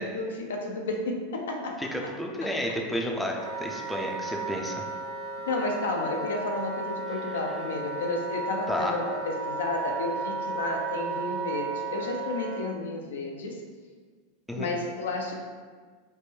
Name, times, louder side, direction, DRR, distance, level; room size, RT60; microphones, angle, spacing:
voice 1, 0.0-1.9 2.4-2.5 5.5-13.6 14.6-15.4, left 2 dB, 85° left, 2 dB, 0.4 m, -32 dB
voice 2, 1.8-4.9 8.7-8.9 14.5-14.7, equal, 5° left, 0 dB, 0.4 m, -31 dB
Wind instrument woodwind instrument, 3.3-12.7, right 3 dB, 65° right, 0.5 m, -34 dB
3.1 x 2.1 x 3.4 m, 1.5 s
hypercardioid pair, 110°, 0 cm